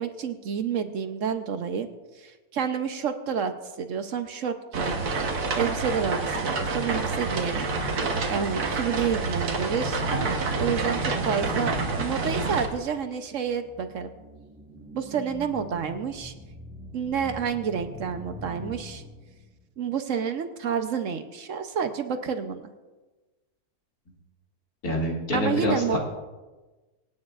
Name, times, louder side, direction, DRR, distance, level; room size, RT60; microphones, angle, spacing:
voice 1, 0.0-1.9 2.2-7.7 8.3-10.0 10.6-14.1 14.9-16.3 16.9-19.0 19.8-22.7 25.3-26.0, right 7 dB, 65° right, 8 dB, 1.0 m, -29 dB
sound 1, 4.7-12.7, right 3 dB, 85° right, 1.8 m, -28 dB
sound 2, 13.3-19.6, equal, 5° right, 1.2 m, -43 dB
voice 2, 24.8-26.0, left 1 dB, 75° left, -3 dB, 2.9 m, -26 dB
25.0 x 9.5 x 2.4 m, 1.2 s
omnidirectional pair, 1.6 m